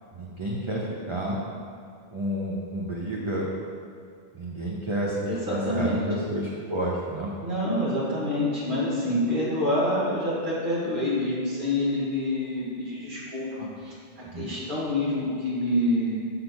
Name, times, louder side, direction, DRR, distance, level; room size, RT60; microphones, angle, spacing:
voice 1, 0.1-1.4 2.1-3.5 4.3-7.3 14.3-14.5, right 1 dB, 30° right, -4 dB, 0.8 m, -30 dB
voice 2, 5.3-6.1 7.4-16.2, left 1 dB, 50° right, -7 dB, 2.1 m, -27 dB
6.3 x 5.9 x 5.3 m, 2.2 s
omnidirectional pair, 1.1 m